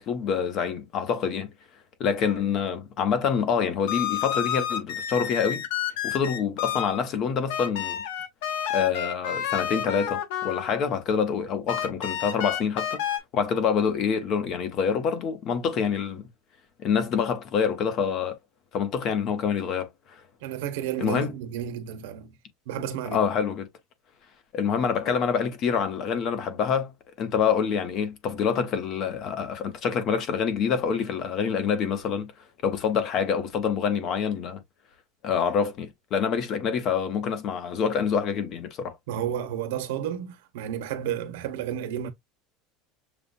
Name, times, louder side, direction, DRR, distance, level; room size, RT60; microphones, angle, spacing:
voice 1, 0.0-1.5 2.0-5.6 6.0-8.0 8.7-13.0 13.3-16.3 16.8-18.4 18.7-20.2 21.0-21.3 23.1-23.7 24.5-26.9 27.2-32.3 32.6-34.6 35.2-39.0, left 6 dB, 35° left, 1.0 m, -26 dB
sound 1, 2.2-2.5 3.9-7.1 7.5-10.9 11.7-13.2, left 10 dB, 80° left, 1.2 m, -30 dB
voice 2, 20.4-22.4 22.7-23.2 39.1-42.1, right 10 dB, 80° right, 1.1 m, -32 dB
6.9 x 2.4 x 2.6 m
cardioid pair, 175°, 0 cm